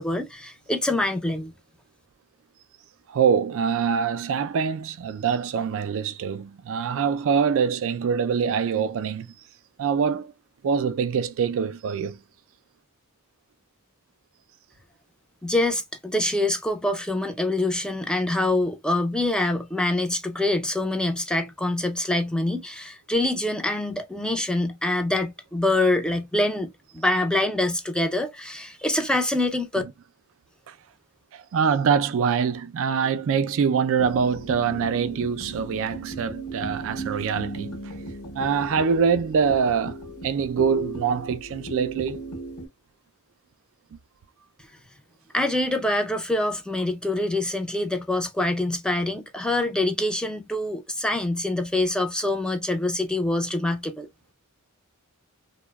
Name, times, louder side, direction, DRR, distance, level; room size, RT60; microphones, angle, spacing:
voice 1, 0.0-1.5 15.4-29.8 45.3-54.1, left 1 dB, 5° left, 0.5 m, -25 dB
voice 2, 3.1-9.3 9.8-10.3 10.6-12.2 30.7-30.8 31.3-37.7 38.3-42.2, right 6 dB, 65° right, 0.4 m, -24 dB
sound 1, 34.0-42.7, right 1 dB, 75° left, 0.9 m, -36 dB
2.9 x 2.0 x 2.2 m
head